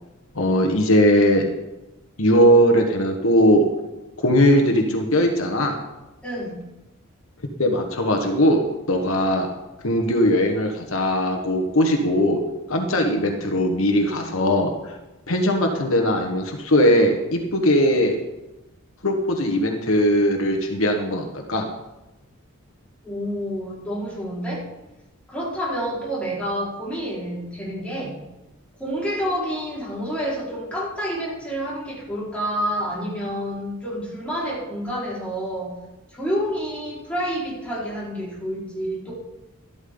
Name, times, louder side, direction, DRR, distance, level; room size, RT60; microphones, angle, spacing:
voice 1, 0.3-1.5 2.2-3.6 4.2-5.8 7.6-9.5 9.8-12.4 12.7-14.9 15.3-18.2 19.0-21.7, equal, 70° left, 3 dB, 1.5 m, -19 dB
voice 2, 6.2-6.6 23.0-24.6 25.3-28.2 28.8-35.7 36.1-39.1, equal, 5° left, -7 dB, 4.8 m, -28 dB
13.0 x 12.5 x 3.9 m, 1.0 s
head